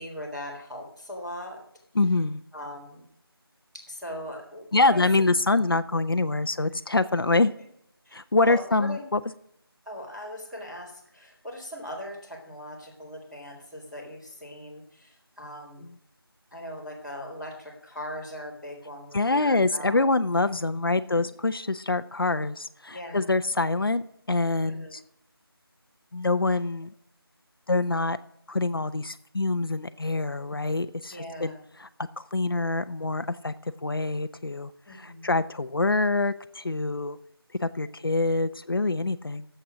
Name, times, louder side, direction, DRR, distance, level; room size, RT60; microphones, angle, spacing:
voice 1, 0.0-1.6 2.5-3.0 3.7-5.3 8.1-9.1 9.8-15.9 16.5-20.1 22.9-23.3 24.6-24.9 31.1-31.6 34.9-35.3, left 1 dB, ahead, -10 dB, 1.9 m, -39 dB
voice 2, 1.9-2.4 4.7-7.5 8.1-9.2 15.8-15.9 19.1-25.0 26.1-26.9 27.7-28.2 28.5-31.5 31.8-31.9 32.2-33.5 33.8-37.2 37.6-39.5, left 3 dB, 65° left, 11 dB, 0.7 m, -25 dB
12.0 x 7.9 x 6.1 m, 0.72 s
figure-of-eight pair, 170°, 13 cm